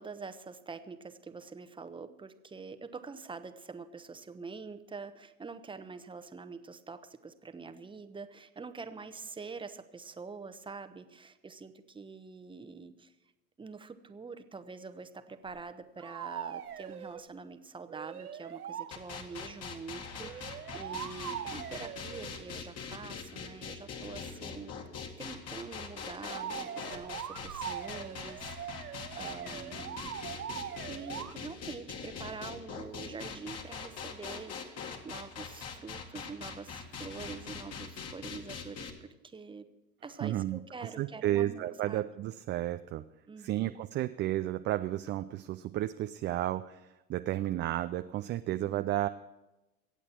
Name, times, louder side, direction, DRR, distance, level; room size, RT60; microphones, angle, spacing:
voice 1, 0.0-13.1 13.6-24.8 25.2-30.2 30.9-39.7 40.0-42.1 43.3-43.7 48.6-48.9, right 4 dB, 10° right, 10 dB, 1.0 m, -45 dB
sound 1, 15.5-15.6 16.0-17.3 17.9-18.9 20.2-22.3 26.2-31.3, right 9 dB, 85° right, 1.0 m, -41 dB
sound 2, 18.9-38.9, left 6 dB, 35° left, 2.2 m, -42 dB
voice 2, 40.2-40.6 41.0-43.0 43.4-46.8 47.1-49.1, right 14 dB, 25° right, 10 dB, 0.4 m, -32 dB
24.0 x 8.4 x 4.5 m, 1.0 s
hypercardioid pair, 90°, 44 cm